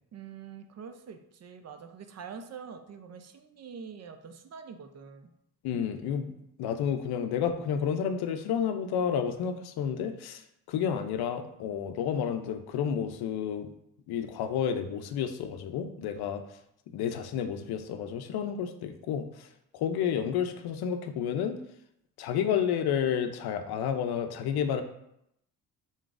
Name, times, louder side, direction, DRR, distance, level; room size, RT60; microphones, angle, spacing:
voice 1, 0.1-5.3, right 6 dB, 45° right, 7 dB, 0.5 m, -45 dB
voice 2, 5.6-6.3 6.6-10.4 10.7-13.7 14.1-16.4 16.9-19.5 19.7-21.6 22.2-24.8, left 8 dB, 75° left, 8 dB, 0.5 m, -30 dB
3.8 x 3.7 x 2.4 m, 0.78 s
cardioid pair, 80°, 39 cm